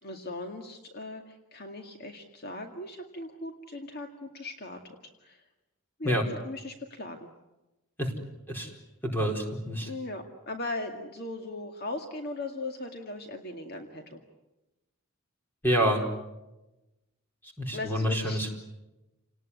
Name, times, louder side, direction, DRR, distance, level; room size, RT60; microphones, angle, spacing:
voice 1, 0.0-5.4 6.0-7.3 9.9-14.2 17.7-18.5, left 2 dB, 45° left, 4 dB, 2.1 m, -39 dB
voice 2, 9.0-9.9 15.6-16.0 17.6-18.5, equal, 10° left, 2 dB, 4.5 m, -27 dB
29.5 x 19.0 x 9.7 m, 1.0 s
head